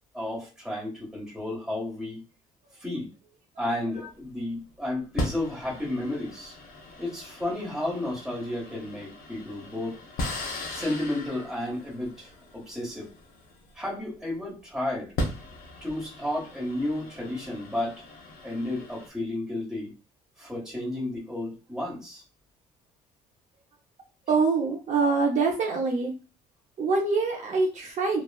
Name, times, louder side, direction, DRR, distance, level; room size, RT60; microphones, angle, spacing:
voice 1, 0.1-2.2 2.8-3.1 3.6-6.5 7.0-10.0 10.7-13.1 13.7-15.1 15.8-18.0 18.4-19.9 20.4-22.2, left 1 dB, 5° right, -4 dB, 1.4 m, -32 dB
sound 1, 3.9-4.2 5.2-14.2 14.9-19.1, left 1 dB, 60° left, 0.7 m, -38 dB
voice 2, 24.3-26.1 26.8-28.2, right 4 dB, 45° right, -1 dB, 0.6 m, -25 dB
2.9 x 2.3 x 2.3 m, 0.32 s
cardioid pair, 110°, 17 cm